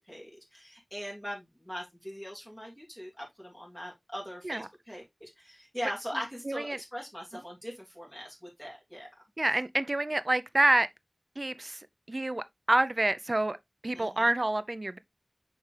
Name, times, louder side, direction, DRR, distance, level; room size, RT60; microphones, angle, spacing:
voice 1, 0.1-9.1 13.9-14.2, equal, 5° left, 2.9 m, -41 dB
voice 2, 6.5-6.8 9.4-10.9 11.4-11.8 12.1-13.6 13.8-15.0, right 2 dB, 55° right, 0.5 m, -27 dB
7.0 x 4.3 x 3.2 m
wide cardioid pair, 45°, 0 cm